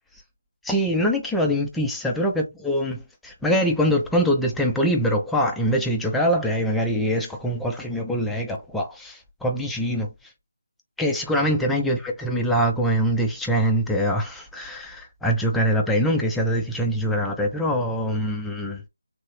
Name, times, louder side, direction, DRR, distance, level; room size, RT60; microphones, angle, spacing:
voice 1, 0.6-10.1 11.0-18.8, equal, 5° left, 0.4 m, -23 dB
3.3 x 2.6 x 3.1 m
figure-of-eight pair, 160°, 0 cm